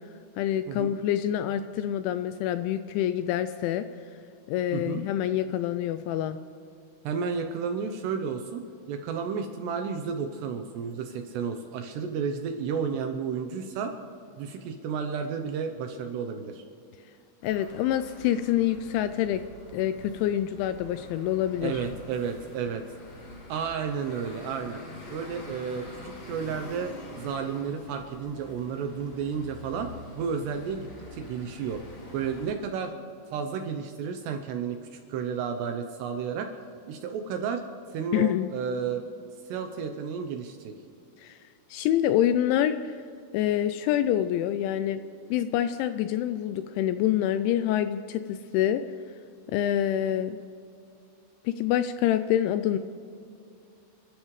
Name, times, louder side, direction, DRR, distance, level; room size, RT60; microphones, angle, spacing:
voice 1, 0.4-3.9 4.5-6.4 17.4-19.4 19.7-21.8 38.1-38.5 41.2-41.4 41.7-43.0 43.3-45.0 45.3-48.8 49.5-50.4 51.5-52.8, left 11 dB, 85° left, 10 dB, 2.7 m, -26 dB
voice 2, 7.0-8.6 8.9-13.9 14.4-16.6 21.6-22.8 23.5-24.8 25.1-29.9 30.2-31.8 32.1-32.9 33.3-36.5 36.9-37.6 37.9-39.0 39.5-40.7, right 6 dB, 80° right, 5 dB, 2.5 m, -32 dB
sound 1, 17.4-32.5, left 1 dB, 40° left, 2.3 m, -45 dB
29.0 x 13.0 x 3.2 m, 2.5 s
omnidirectional pair, 5.7 m